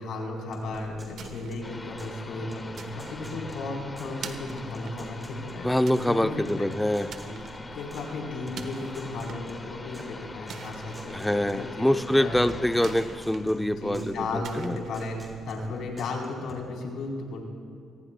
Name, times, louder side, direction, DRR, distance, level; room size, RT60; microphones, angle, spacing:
voice 1, 0.0-5.7 6.0-6.7 7.3-7.4 7.7-11.9 12.2-12.5 13.6-17.4, left 3 dB, 75° left, 0 dB, 3.7 m, -35 dB
sound 1, 0.5-2.2 2.5-4.2 4.5-6.2 6.5-8.1 8.5-10.1 10.5-12.2 12.5-14.2 14.5-16.5, right 2 dB, 15° right, 4.0 m, -45 dB
sound 2, 0.6-15.9, right 5 dB, 70° right, 1.2 m, -46 dB
sound 3, 1.6-15.0, left 2 dB, 25° left, 1.2 m, -43 dB
voice 2, 5.6-7.2 11.1-14.8, left 1 dB, 5° left, 8 dB, 0.6 m, -25 dB
25.5 x 19.5 x 2.2 m, 2.4 s
cardioid pair, 90°, 0 cm